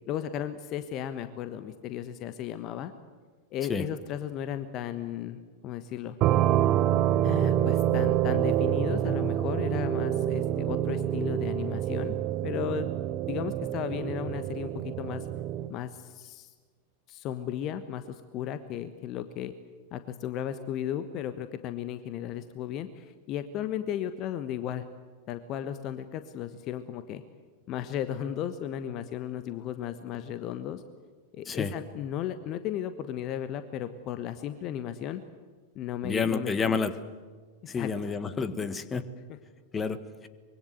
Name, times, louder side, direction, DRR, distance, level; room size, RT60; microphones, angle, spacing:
voice 1, 0.1-2.9 3.5-6.2 7.2-12.1 12.4-12.9 13.3-15.3 15.7-16.5 17.1-19.5 19.9-24.8 25.3-27.2 27.7-30.8 31.3-35.2 35.7-36.8 37.6-38.1 39.3-39.4, left 10 dB, 35° left, 11 dB, 1.3 m, -35 dB
sound 1, 6.2-15.7, right 12 dB, 35° right, 1.0 m, -27 dB
voice 2, 36.0-36.9 37.7-39.0 39.7-40.3, left 5 dB, 20° left, 12 dB, 1.6 m, -29 dB
25.0 x 23.0 x 8.0 m, 1.5 s
figure-of-eight pair, 90°, 0 cm